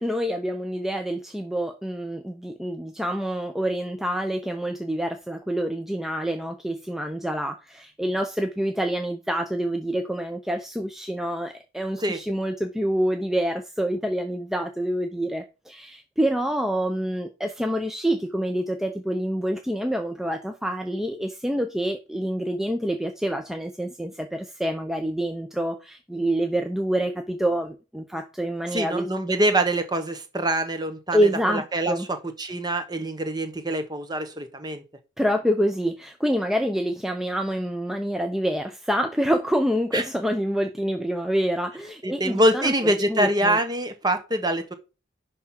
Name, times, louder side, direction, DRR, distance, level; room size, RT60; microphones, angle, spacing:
voice 1, 0.0-29.1 31.1-32.1 35.2-43.6, equal, ahead, 0.6 m, -27 dB
voice 2, 28.7-31.2 31.5-31.9 32.4-34.8 39.9-40.0 42.0-44.7, right 1 dB, 20° right, 1.2 m, -24 dB
10.5 x 3.7 x 5.8 m
head